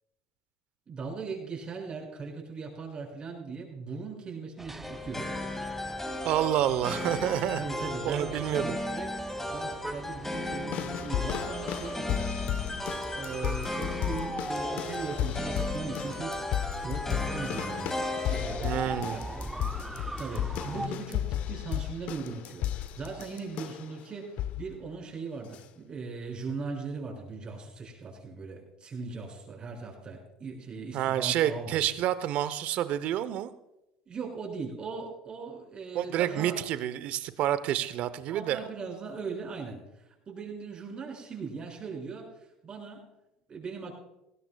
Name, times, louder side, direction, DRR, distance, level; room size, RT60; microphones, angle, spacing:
voice 1, 0.9-5.3 7.0-7.1 7.6-12.9 13.1-16.4 16.8-19.5 20.2-24.3 24.6-31.8 34.1-36.6 38.3-39.8 40.3-42.2 42.6-43.1 43.5-44.0, right 4 dB, 35° right, 1 dB, 6.2 m, -39 dB
sound 1, 4.6-20.9, right 2 dB, 10° right, 0.8 m, -42 dB
sound 2, 4.8-18.7, left 1 dB, 15° left, 2.2 m, -36 dB
voice 2, 6.2-7.6 8.0-8.8 18.6-19.2 30.9-33.5 35.9-38.7, right 11 dB, 60° right, 14 dB, 0.9 m, -29 dB
sound 3, 10.7-23.9 24.4-24.7 25.5-25.6, left 12 dB, 60° left, 0.7 m, -34 dB
20.5 x 17.0 x 2.4 m, 0.92 s
hypercardioid pair, 80°, 3 cm